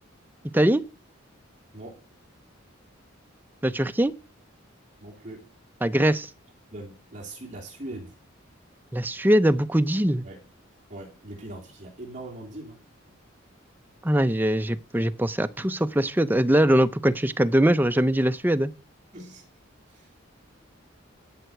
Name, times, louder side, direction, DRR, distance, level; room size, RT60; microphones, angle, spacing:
voice 1, 3.6-4.1 5.8-6.3 8.9-10.2 14.0-18.7, right 1 dB, 10° right, 0.5 m, -22 dB
voice 2, 5.0-5.5 6.7-8.2 10.2-10.5 10.9-12.8 19.1-19.4 19.9-20.1, right 1 dB, 35° right, 2.9 m, -41 dB
12.5 x 5.7 x 8.0 m
head